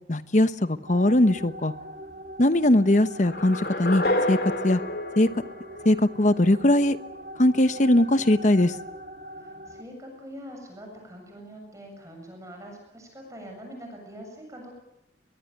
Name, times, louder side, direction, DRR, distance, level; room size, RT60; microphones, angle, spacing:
voice 1, 0.1-1.7 2.4-4.4 4.6-4.8 5.2-5.3 5.8-7.0 7.4-8.7, left 1 dB, 40° left, 12 dB, 1.0 m, -20 dB
sound 1, 0.9-9.8, right 1 dB, 55° right, 2.1 m, -42 dB
sound 2, 3.2-6.3, left 1 dB, 60° left, 3.3 m, -29 dB
voice 2, 9.4-14.7, equal, 15° right, 2 dB, 7.3 m, -43 dB
23.0 x 21.0 x 9.1 m, 0.86 s
head